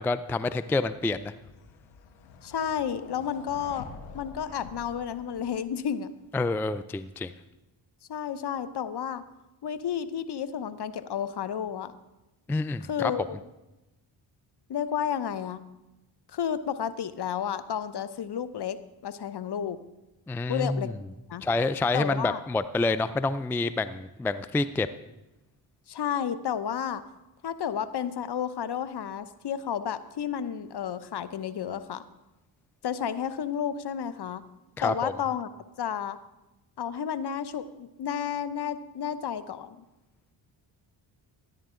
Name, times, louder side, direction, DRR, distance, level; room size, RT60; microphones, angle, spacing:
voice 1, 0.0-1.3 6.3-7.3 12.5-13.1 20.3-20.9 21.4-24.9 34.8-35.1, left 3 dB, 5° left, 13 dB, 0.3 m, -28 dB
sound 1, 1.4-5.8, left 4 dB, 85° left, 1.2 m, -47 dB
voice 2, 2.4-3.9 4.1-6.1 8.1-9.2 9.6-11.9 12.9-13.4 14.7-15.6 16.3-18.8 19.0-19.8 20.5-20.9 21.3-21.4 21.9-22.4 25.9-27.0 27.4-32.0 32.8-34.4 34.8-35.5 35.8-36.2 36.8-39.8, left 8 dB, 55° left, 13 dB, 0.9 m, -31 dB
13.0 x 10.0 x 3.8 m, 0.98 s
supercardioid pair, 55°, 49 cm